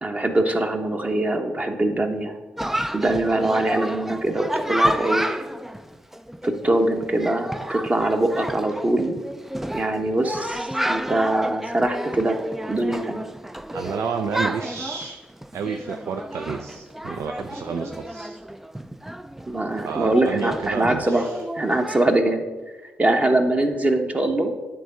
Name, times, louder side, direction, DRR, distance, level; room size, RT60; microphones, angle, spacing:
voice 1, 0.0-2.4 2.9-5.4 6.4-9.2 9.7-12.4 12.7-13.3 19.5-21.3 21.5-22.4 23.0-24.5, right 1 dB, 25° right, 5 dB, 1.0 m, -23 dB
Chatter, 2.6-22.2, equal, 5° right, 0.3 m, -30 dB
voice 2, 13.7-15.2 15.5-18.4 19.8-21.4, right 6 dB, 65° right, 6 dB, 0.5 m, -30 dB
9.1 x 3.7 x 5.5 m, 1.3 s
hypercardioid pair, 50°, 5 cm